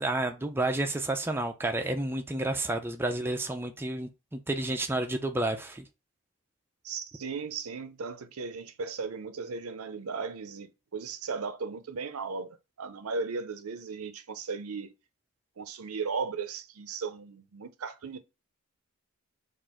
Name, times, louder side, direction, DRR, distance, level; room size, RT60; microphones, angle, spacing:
voice 1, 0.0-5.8, right 2 dB, 10° right, 0.4 m, -30 dB
voice 2, 6.8-14.9 15.6-18.2, right 4 dB, 80° right, 0.6 m, -36 dB
4.5 x 2.5 x 4.3 m
head